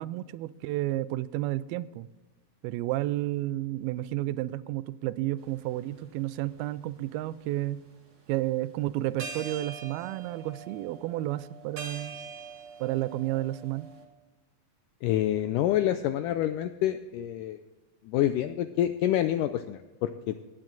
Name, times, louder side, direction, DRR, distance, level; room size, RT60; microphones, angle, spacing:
voice 1, 0.0-2.1 2.6-7.8 8.3-12.2 12.8-13.9, right 15 dB, 85° right, 16 dB, 2.4 m, -31 dB
sound 1, 5.4-5.6 6.3-7.3 8.8-8.9 9.2-14.0, right 5 dB, 40° right, 1.8 m, -43 dB
voice 2, 15.0-17.6 18.0-20.4, left 12 dB, 85° left, 10 dB, 1.8 m, -27 dB
18.0 x 8.9 x 3.9 m, 1.2 s
omnidirectional pair, 4.3 m